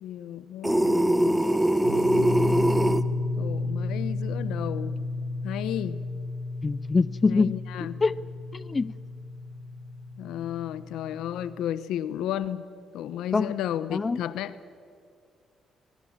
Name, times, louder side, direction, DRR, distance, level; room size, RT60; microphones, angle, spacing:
voice 1, 0.0-1.5 1.9-2.4 3.4-4.9 5.4-6.0 7.3-8.0 10.2-12.7 12.9-14.6, left 11 dB, 85° left, 14 dB, 1.0 m, -33 dB
sound 1, 0.6-3.0, right 1 dB, 5° right, 1.0 m, -22 dB
sound 2, 1.8-11.4, left 2 dB, 75° right, 5.6 m, -32 dB
voice 2, 6.6-7.5 8.0-8.1 8.5-8.9 13.3-13.5, left 4 dB, 30° left, 18 dB, 0.5 m, -23 dB
24.0 x 21.5 x 7.5 m, 2.2 s
cardioid pair, 90°, 0 cm